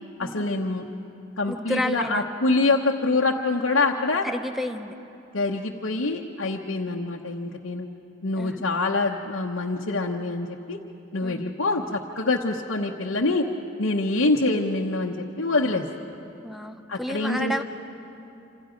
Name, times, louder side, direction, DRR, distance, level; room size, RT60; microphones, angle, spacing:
voice 1, 0.2-0.8 1.4-4.3 5.3-7.9 8.2-10.8 11.1-13.5 13.8-15.8 16.9-17.6, left 3 dB, 85° left, -1 dB, 1.1 m, -25 dB
voice 2, 1.5-2.3 4.2-4.9 8.4-8.6 11.2-11.4 16.4-17.6, left 1 dB, ahead, 7 dB, 0.9 m, -30 dB
28.0 x 26.5 x 5.2 m, 2.8 s
head